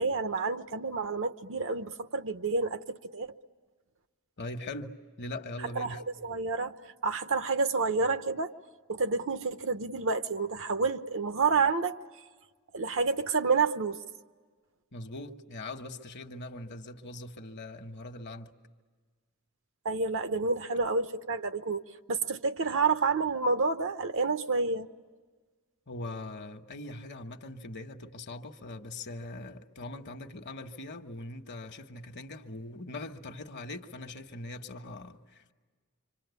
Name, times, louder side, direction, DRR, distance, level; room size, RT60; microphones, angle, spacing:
voice 1, 0.0-3.4 5.7-8.5 8.9-12.0 12.7-14.0 19.8-21.8 22.1-24.9, right 4 dB, 60° right, 1.0 m, -29 dB
voice 2, 4.4-6.0 14.9-18.5 25.9-35.5, left 2 dB, 50° left, 1.3 m, -41 dB
26.5 x 25.5 x 8.2 m
head